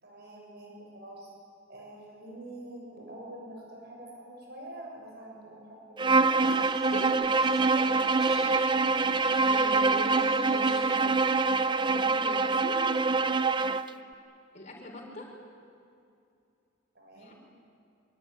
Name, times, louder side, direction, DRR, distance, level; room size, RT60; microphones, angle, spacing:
voice 1, 0.0-1.3 1.7-6.2 8.2-8.5 13.8-14.0 17.0-17.3, right 1 dB, 50° right, -1 dB, 7.0 m, -46 dB
Bowed string instrument, 6.0-13.9, right 3 dB, 25° right, 0.7 m, -25 dB
sound 1, 6.4-11.5, left 1 dB, ahead, 8.0 m, -48 dB
voice 2, 9.5-11.2 11.9-12.9 14.5-15.3 17.1-17.3, equal, 35° left, -1 dB, 5.5 m, -41 dB
25.5 x 22.5 x 9.8 m, 2.5 s
head